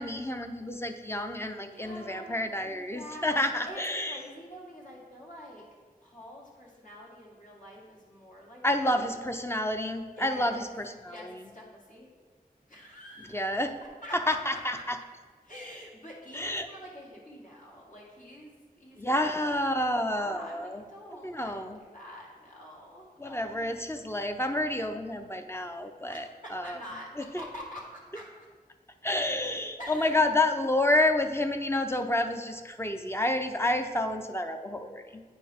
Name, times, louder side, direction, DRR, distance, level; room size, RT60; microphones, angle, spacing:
voice 1, 0.0-4.2 8.6-10.7 11.0-11.3 13.3-13.8 14.1-15.0 16.3-16.7 19.0-20.8 21.2-21.8 23.2-26.8 27.2-27.3 29.0-35.2, left 1 dB, 15° left, 6 dB, 0.5 m, -29 dB
voice 2, 1.6-5.6 6.0-9.1 10.2-10.7 11.0-12.1 12.7-13.5 14.0-14.8 15.4-19.6 20.1-23.6 26.1-28.5 29.8-30.2, equal, 60° left, -4 dB, 1.9 m, -46 dB
9.2 x 4.5 x 3.5 m, 1.6 s
wide cardioid pair, 60°, 15 cm